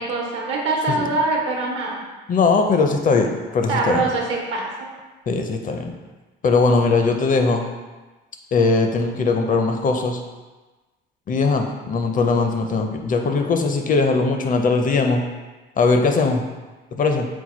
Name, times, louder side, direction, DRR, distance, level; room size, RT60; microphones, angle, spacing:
voice 1, 0.0-2.0 3.7-4.9, right 3 dB, 80° right, -1 dB, 1.0 m, -23 dB
voice 2, 2.3-4.0 5.3-5.9 6.4-7.6 8.5-10.2 11.3-15.2 15.8-16.4 16.9-17.3, left 4 dB, 40° left, 4 dB, 0.5 m, -20 dB
4.4 x 2.2 x 4.3 m, 1.2 s
cardioid pair, 90°, 20 cm